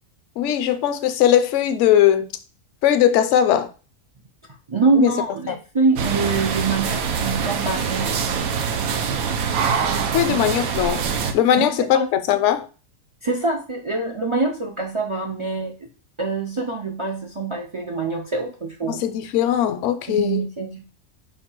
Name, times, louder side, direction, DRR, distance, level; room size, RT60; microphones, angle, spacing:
voice 1, 0.4-2.3 2.8-3.7 5.0-5.1 5.5-5.6 10.1-11.1 11.3-12.6 18.9-20.4, left 10 dB, 65° left, 0.8 m, -19 dB
voice 2, 4.7-8.2 10.3-10.5 11.6-12.1 13.2-15.7 16.2-19.0 20.1-20.8, right 3 dB, 55° right, 0.3 m, -24 dB
sound 1, 6.0-11.3, right 6 dB, 85° right, 1.1 m, -24 dB
5.1 x 2.3 x 4.4 m
omnidirectional pair, 1.5 m